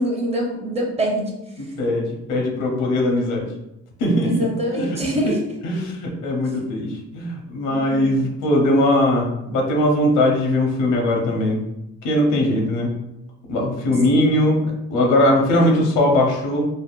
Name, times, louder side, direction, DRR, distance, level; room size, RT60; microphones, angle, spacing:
voice 1, 0.0-1.4 4.2-5.5 7.7-8.3 12.3-12.7 13.8-14.5, right 1 dB, 20° right, -1 dB, 0.7 m, -26 dB
voice 2, 1.6-3.5 4.0-4.5 4.7-5.0 5.6-11.6 12.0-12.9 13.5-16.7, left 1 dB, 85° left, 1 dB, 0.7 m, -20 dB
3.4 x 2.1 x 2.3 m, 0.90 s
cardioid pair, 90°, 30 cm